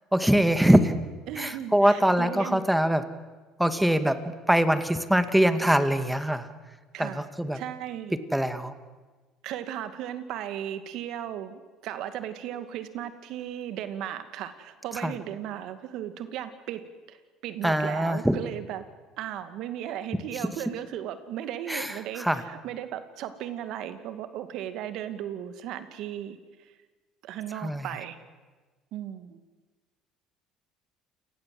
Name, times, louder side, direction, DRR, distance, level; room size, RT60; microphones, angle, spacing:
voice 1, 0.1-0.9 1.4-3.0 3.6-4.2 4.5-6.5 7.0-7.6 8.3-8.7 15.0-15.1 17.6-18.3 21.7-22.4 27.6-27.9, right 1 dB, 5° right, 10 dB, 2.4 m, -23 dB
voice 2, 1.3-2.6 6.9-7.2 7.5-8.2 9.4-18.8 19.2-26.8 27.2-28.2 28.9-29.4, right 10 dB, 65° right, 10 dB, 2.3 m, -36 dB
29.5 x 19.0 x 7.9 m, 1.3 s
hypercardioid pair, 75°, 0 cm